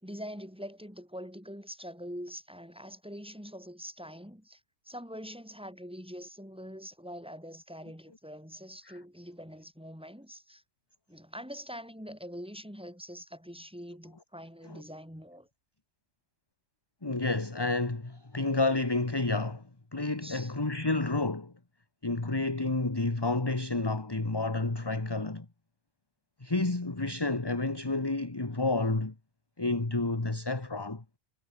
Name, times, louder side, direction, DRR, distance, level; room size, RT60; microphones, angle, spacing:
voice 1, 0.0-4.6 4.9-10.6 11.1-15.5 20.2-20.5, equal, 5° right, 5.4 m, -44 dB
voice 2, 17.0-19.6 19.9-21.5 22.0-25.4 26.4-29.1 29.6-31.0, left 2 dB, 20° left, 1.5 m, -30 dB
omnidirectional pair, 1.2 m